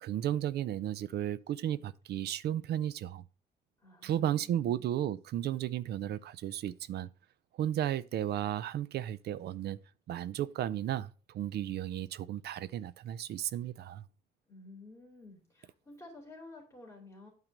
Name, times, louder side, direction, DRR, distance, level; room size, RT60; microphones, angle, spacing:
voice 1, 0.0-3.2 4.0-7.1 7.6-9.8 10.1-14.0, right 11 dB, 70° right, 0.5 m, -34 dB
voice 2, 3.8-4.9 14.5-17.3, left 2 dB, 15° left, 2.7 m, -52 dB
8.9 x 3.7 x 6.6 m
cardioid pair, 140°, 18 cm